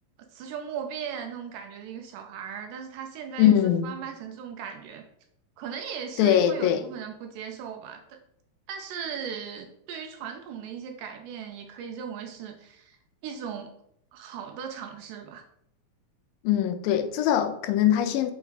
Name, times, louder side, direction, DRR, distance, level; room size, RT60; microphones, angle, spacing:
voice 1, 0.3-5.0 5.6-8.2 8.7-13.7 14.1-15.4, right 7 dB, 80° right, 2.1 m, -38 dB
voice 2, 3.4-3.9 6.2-6.8 16.4-18.3, left 10 dB, 85° left, 2.3 m, -22 dB
6.9 x 3.5 x 4.0 m
omnidirectional pair, 4.0 m